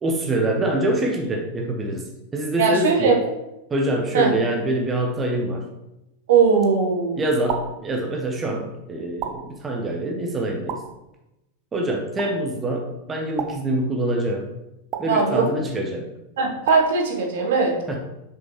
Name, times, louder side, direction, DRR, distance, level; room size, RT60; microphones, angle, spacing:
voice 1, 0.0-3.1 3.7-5.7 7.2-10.8 11.7-14.5 15.0-16.1 17.4-17.5 17.9-18.0, right 1 dB, 20° right, 1 dB, 0.9 m, -25 dB
voice 2, 2.6-3.1 4.1-4.3 6.3-7.2 15.1-15.5 16.4-17.7, right 5 dB, 60° right, 1 dB, 1.2 m, -19 dB
sound 1, 7.5-7.9 9.2-9.6 10.7-11.0 12.2-12.5 13.4-13.8 14.9-15.3 16.7-17.1, right 9 dB, 40° right, 0.6 m, -32 dB
6.5 x 5.2 x 3.1 m, 0.92 s
figure-of-eight pair, 90°, 0 cm